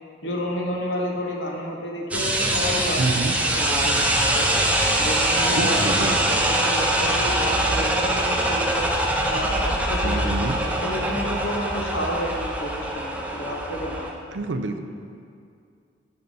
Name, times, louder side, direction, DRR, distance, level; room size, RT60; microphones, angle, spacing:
voice 1, 0.2-4.5 5.0-8.9 9.3-14.1, equal, 80° left, 1 dB, 1.1 m, -31 dB
sound 1, 2.1-14.1, right 1 dB, 10° right, 0.6 m, -23 dB
voice 2, 3.0-3.4 5.6-6.2 10.0-10.6 14.3-14.8, right 3 dB, 80° right, 7 dB, 0.5 m, -27 dB
6.7 x 5.7 x 5.4 m, 2.4 s
head